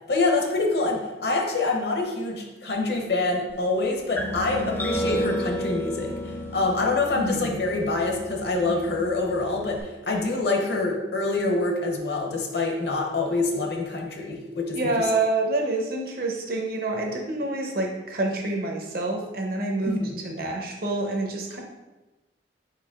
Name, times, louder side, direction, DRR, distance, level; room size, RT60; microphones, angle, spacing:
voice 1, 0.1-14.9 19.8-20.2, left 3 dB, 60° left, 2 dB, 0.7 m, -26 dB
sound 1, 4.2-9.8, equal, 10° left, 0.4 m, -32 dB
voice 2, 7.2-7.6 14.7-20.0 20.2-21.6, right 2 dB, 50° right, 1 dB, 0.7 m, -27 dB
4.7 x 4.0 x 2.3 m, 1.1 s
head